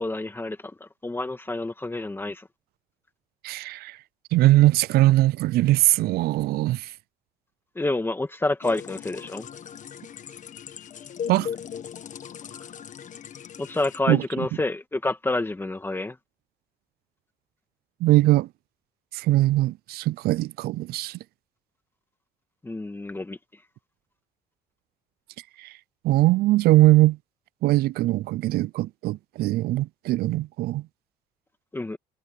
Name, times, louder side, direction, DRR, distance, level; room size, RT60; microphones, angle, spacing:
voice 1, 0.0-2.5 7.8-9.5 13.6-16.2 22.6-23.6 31.7-32.0, left 2 dB, 15° left, 1.9 m, -29 dB
voice 2, 3.4-4.0 4.3-6.9 11.3-11.5 14.1-14.2 18.0-18.5 19.1-21.2 25.6-25.8 26.0-27.2 27.6-30.8, right 16 dB, 65° right, 0.4 m, -21 dB
sound 1, 8.6-14.0, left 8 dB, 45° left, 1.5 m, -38 dB
cardioid pair, 110°, 17 cm